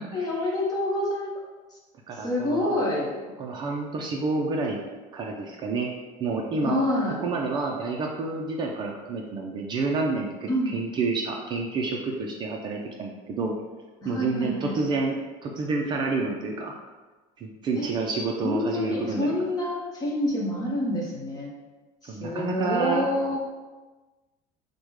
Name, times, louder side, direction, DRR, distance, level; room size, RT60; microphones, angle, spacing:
voice 1, 0.1-1.4 1.7-1.8 2.2-3.1 6.6-7.2 10.5-10.7 14.0-14.9 17.8-17.9 18.4-21.5 22.0-23.4, left 1 dB, 25° left, -3 dB, 0.9 m, -27 dB
voice 2, 2.1-2.8 3.4-4.8 5.1-5.9 6.2-6.8 7.2-13.5 14.1-15.1 15.4-16.7 17.4-19.4 22.1-23.1, right 3 dB, 30° right, 0 dB, 0.4 m, -29 dB
5.0 x 2.1 x 4.6 m, 1.2 s
cardioid pair, 165°, 15 cm